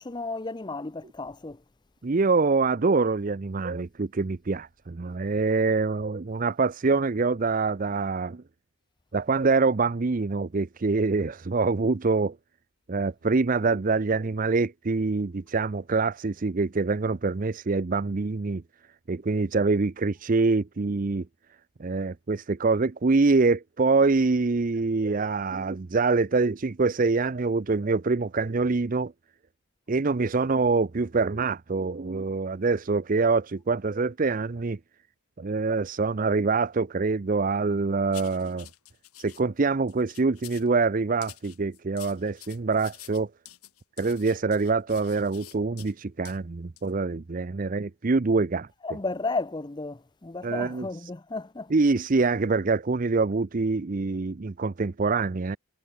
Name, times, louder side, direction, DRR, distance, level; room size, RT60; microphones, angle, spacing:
voice 1, 0.0-1.6 48.8-51.7, left 3 dB, 20° left, 0.6 m, -33 dB
voice 2, 2.0-8.4 9.1-12.4 12.9-18.6 19.1-21.3 21.8-29.1 29.9-34.8 35.4-38.7 39.2-43.3 44.0-48.7 50.4-50.9 51.7-55.6, right 4 dB, 40° right, 0.5 m, -25 dB
sound 1, 38.1-39.4 39.9-40.7 41.2-45.9 46.2-46.4 46.8-46.9, left 15 dB, 90° left, 3.2 m, -48 dB
head